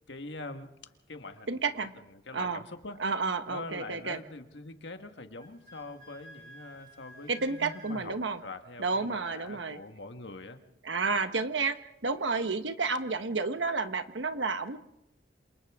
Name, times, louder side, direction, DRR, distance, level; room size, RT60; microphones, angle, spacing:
voice 1, 0.1-3.0 3.5-8.1 8.4-10.6, left 2 dB, 75° left, 7 dB, 1.5 m, -44 dB
voice 2, 1.5-1.9 2.3-2.6 3.0-4.2 7.3-8.4 8.8-9.8 10.8-14.8, right 4 dB, 90° right, 9 dB, 1.2 m, -31 dB
Wind instrument woodwind instrument, 5.4-8.0, equal, 50° right, 4.7 m, -52 dB
27.5 x 27.5 x 3.6 m, 0.83 s
head